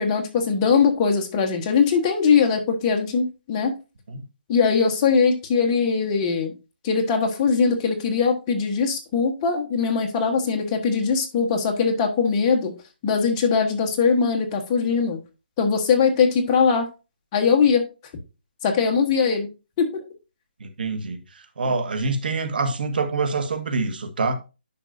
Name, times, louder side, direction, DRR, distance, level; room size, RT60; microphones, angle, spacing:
voice 1, 0.0-3.7 4.5-6.5 6.8-12.7 13.0-15.2 15.6-16.9 17.3-17.8 18.6-19.5 19.8-20.0, left 5 dB, 20° left, 1.3 m, -21 dB
voice 2, 20.6-24.3, right 3 dB, 60° right, 1.7 m, -26 dB
10.0 x 6.1 x 2.6 m
hypercardioid pair, 165°, 6 cm